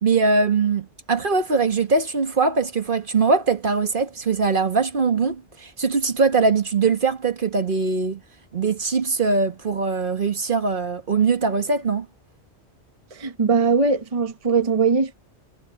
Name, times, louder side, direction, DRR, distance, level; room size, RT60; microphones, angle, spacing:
voice 1, 0.0-8.2 8.5-12.1, right 4 dB, 50° right, 1.6 m, -21 dB
voice 2, 13.1-15.1, right 5 dB, 30° right, 1.0 m, -20 dB
omnidirectional pair, 1.2 m